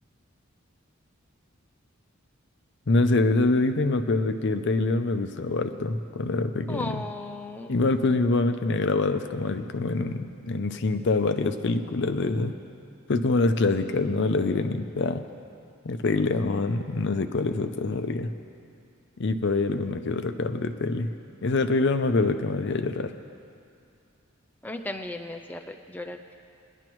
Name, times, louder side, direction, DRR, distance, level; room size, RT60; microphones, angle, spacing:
voice 1, 2.9-7.0 7.7-12.6 13.1-15.2 15.8-18.3 19.2-21.1 21.4-23.1, left 3 dB, 60° left, 8 dB, 0.6 m, -25 dB
voice 2, 6.7-7.8 24.6-26.3, left 1 dB, 10° left, 5 dB, 0.4 m, -36 dB
21.0 x 11.0 x 3.1 m, 2.5 s
head